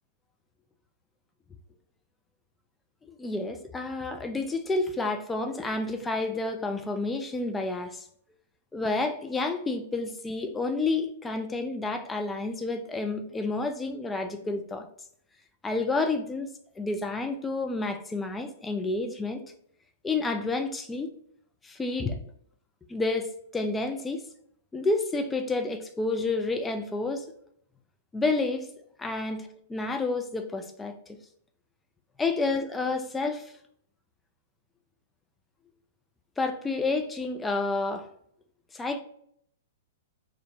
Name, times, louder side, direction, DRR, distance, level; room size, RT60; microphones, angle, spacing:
voice 1, 3.1-8.0 8.7-14.9 15.6-16.5 16.8-19.4 20.0-21.1 21.6-22.2 22.9-24.2 24.7-27.3 28.1-28.7 29.0-30.9 32.2-33.5 36.4-38.1 38.7-39.0, left 3 dB, 10° left, 0.3 m, -30 dB
2.4 x 2.2 x 2.8 m
figure-of-eight pair, 110°, 0 cm